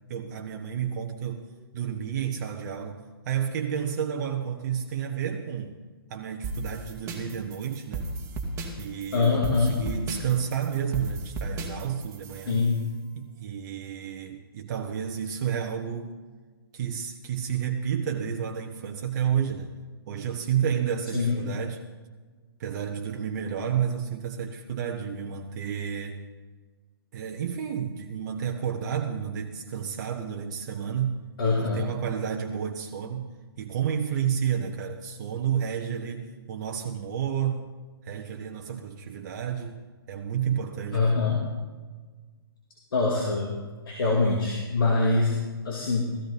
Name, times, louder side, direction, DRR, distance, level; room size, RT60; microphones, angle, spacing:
voice 1, 0.1-1.5 1.7-5.8 6.1-8.0 8.8-12.7 13.1-16.2 16.7-19.7 20.1-21.8 22.6-26.2 27.1-31.2 31.6-33.3 33.6-37.7 38.0-39.8 40.1-41.2, right 8 dB, 45° right, 3 dB, 1.1 m, -31 dB
sound 1, 6.4-12.8, right 2 dB, 20° right, 2.0 m, -35 dB
voice 2, 9.1-9.8 12.5-12.9 21.1-21.4 31.4-31.9 40.9-41.5 42.9-43.6 43.9-46.2, left 3 dB, 65° left, -1 dB, 2.6 m, -24 dB
16.0 x 14.5 x 4.2 m, 1.4 s
figure-of-eight pair, 125°, 13 cm